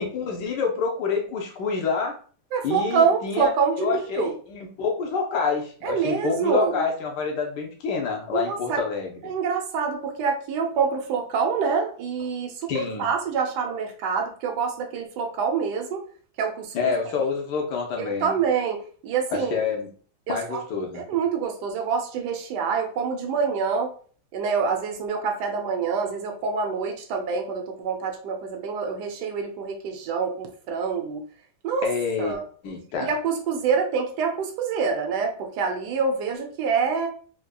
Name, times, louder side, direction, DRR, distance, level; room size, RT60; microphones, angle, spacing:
voice 1, 0.0-2.2 2.6-3.5 3.8-9.3 12.7-13.1 16.7-18.3 19.3-19.9 20.3-21.0 31.8-32.4 32.6-33.1, left 5 dB, 85° left, 2 dB, 1.4 m, -27 dB
voice 2, 2.5-4.3 5.8-6.8 8.3-8.8 9.2-16.0 16.4-16.9 18.0-19.6 20.3-20.6 20.9-23.9 24.3-31.2 31.6-31.9 32.2-32.4 33.0-37.1, right 5 dB, 80° right, 3 dB, 1.2 m, -26 dB
3.8 x 2.8 x 2.2 m, 0.43 s
omnidirectional pair, 1.8 m